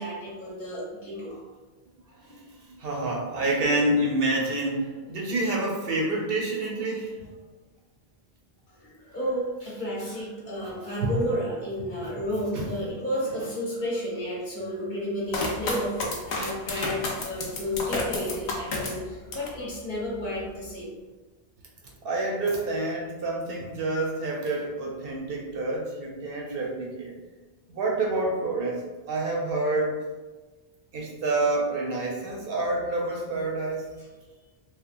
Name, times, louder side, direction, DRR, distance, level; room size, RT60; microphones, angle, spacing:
voice 1, 0.0-1.5 8.7-20.9, equal, 50° left, -5 dB, 0.9 m, -32 dB
voice 2, 2.7-7.3 10.6-10.7 11.0-11.1 12.0-12.1 12.5-12.7 22.0-27.2 27.7-30.0 30.9-33.9, right 2 dB, 65° right, -2 dB, 0.8 m, -28 dB
sound 1, 15.3-19.6 20.0-20.7, left 2 dB, 80° left, 0.8 m, -31 dB
2.8 x 2.2 x 2.5 m, 1.2 s
omnidirectional pair, 1.1 m